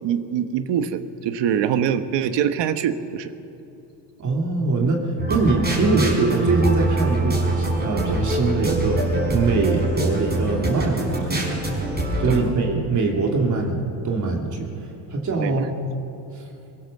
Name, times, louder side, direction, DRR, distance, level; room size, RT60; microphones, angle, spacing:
voice 1, 0.0-3.3 12.3-12.5 15.4-15.7, right 9 dB, 60° right, 10 dB, 1.3 m, -24 dB
voice 2, 4.2-5.0 5.3-11.5 12.2-14.7 15.1-15.7 16.4-16.5, right 3 dB, 35° right, 0 dB, 2.8 m, -23 dB
sound 1, 5.2-12.4, right 2 dB, 20° right, 5.2 m, -24 dB
22.5 x 22.0 x 6.7 m, 2.8 s
cardioid pair, 125°, 48 cm